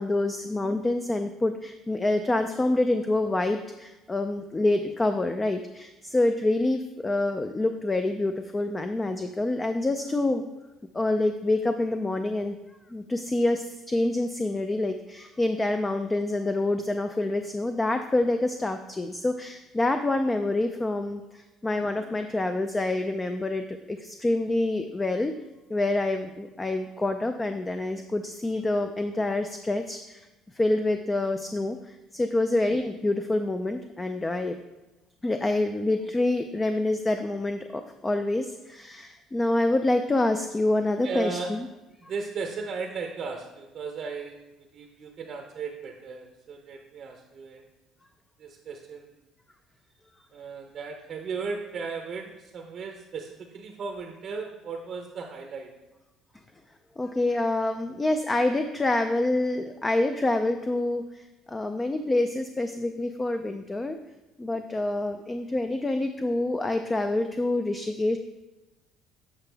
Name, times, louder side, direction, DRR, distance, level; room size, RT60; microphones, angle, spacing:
voice 1, 0.0-10.4 10.9-12.6 12.9-25.3 25.7-30.3 30.5-34.5 35.2-41.7 57.0-61.2 61.5-64.0 64.4-68.2, left 2 dB, 15° left, 7 dB, 0.3 m, -27 dB
voice 2, 41.0-41.5 42.0-47.6 48.4-49.1 50.3-55.7, right 4 dB, 40° right, 3 dB, 0.6 m, -36 dB
7.9 x 5.6 x 3.3 m, 1.1 s
cardioid pair, 160°, 0 cm